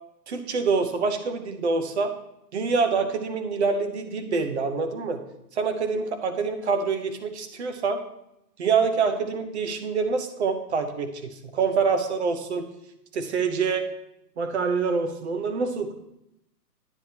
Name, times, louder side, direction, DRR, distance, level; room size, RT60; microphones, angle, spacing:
voice 1, 0.3-2.1 2.5-5.2 5.5-8.0 8.6-12.6 13.1-13.9 14.4-15.9, right 5 dB, 40° right, 8 dB, 0.9 m, -26 dB
9.9 x 7.7 x 2.9 m, 0.84 s
hypercardioid pair, 155°, 50 cm